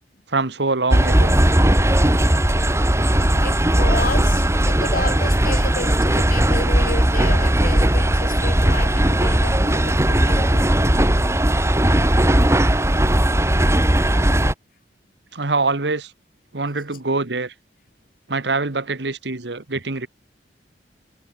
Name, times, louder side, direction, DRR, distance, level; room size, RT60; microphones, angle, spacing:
voice 1, 0.3-1.4 15.3-16.1 16.5-17.5 18.3-20.1, right 3 dB, 75° right, 1.5 m, -24 dB
sound 1, 0.9-14.5, right 1 dB, 15° right, 1.7 m, -17 dB
voice 2, 3.4-10.7, left 3 dB, 55° left, 4.0 m, -31 dB
head